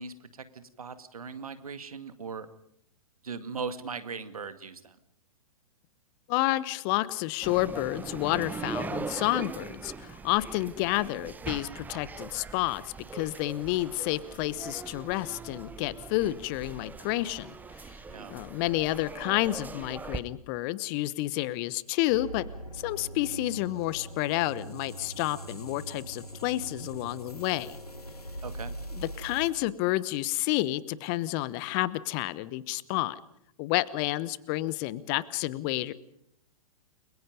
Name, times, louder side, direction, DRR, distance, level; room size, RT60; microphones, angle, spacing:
voice 1, 0.0-2.5 3.2-5.0 18.1-18.3 28.4-28.7, right 5 dB, 70° right, 11 dB, 2.1 m, -39 dB
voice 2, 6.3-17.5 18.3-22.5 22.7-27.8 28.9-33.2 33.6-35.9, left 17 dB, 35° left, 19 dB, 1.0 m, -30 dB
sound 1, 7.4-20.2, right 4 dB, 10° right, 1.1 m, -41 dB
sound 2, 22.1-29.5, right 1 dB, 90° left, 2.6 m, -42 dB
30.0 x 22.5 x 5.3 m, 0.71 s
figure-of-eight pair, 110°, 19 cm